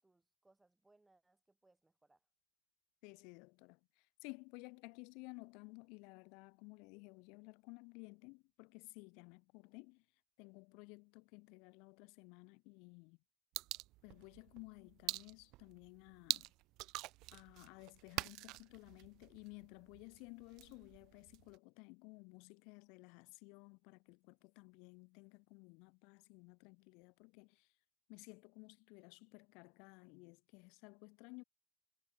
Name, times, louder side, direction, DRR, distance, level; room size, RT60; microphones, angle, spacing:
voice 1, 0.0-2.3, right 2 dB, 10° right, 6.3 m, -73 dB
voice 2, 3.0-10.0 10.4-13.2 14.0-16.5 17.3-27.7 28.1-31.4, left 31 dB, 80° left, 1.0 m, -56 dB
sound 1, 13.5-21.6, right 20 dB, 70° right, 0.5 m, -46 dB
supercardioid pair, 105°, 0 cm